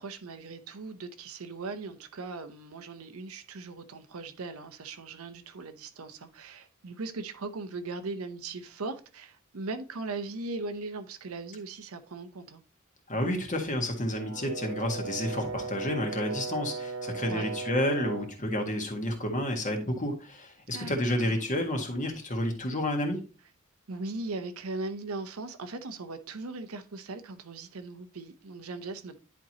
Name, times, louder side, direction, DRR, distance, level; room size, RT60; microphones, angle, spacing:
voice 1, 0.0-12.6 17.3-17.5 20.7-21.4 23.9-29.2, right 3 dB, 80° right, 0.8 m, -39 dB
voice 2, 13.1-23.2, left 1 dB, 35° left, 1.6 m, -30 dB
Brass instrument, 14.1-18.4, right 4 dB, 65° right, 1.2 m, -37 dB
10.0 x 4.5 x 2.9 m
head